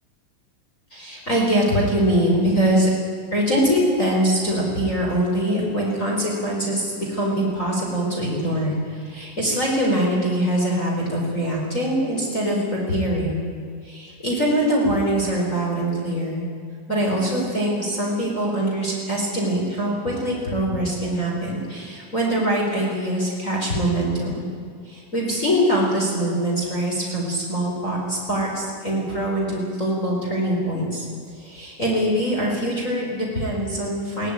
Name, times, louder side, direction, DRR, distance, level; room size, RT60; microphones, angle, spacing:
voice 1, 0.9-2.9 3.3-13.4 13.8-16.4 16.9-24.5 24.8-31.0 31.4-34.3, right 1 dB, 20° left, -3 dB, 4.7 m, -23 dB
22.0 x 17.5 x 9.1 m, 2.1 s
omnidirectional pair, 4.0 m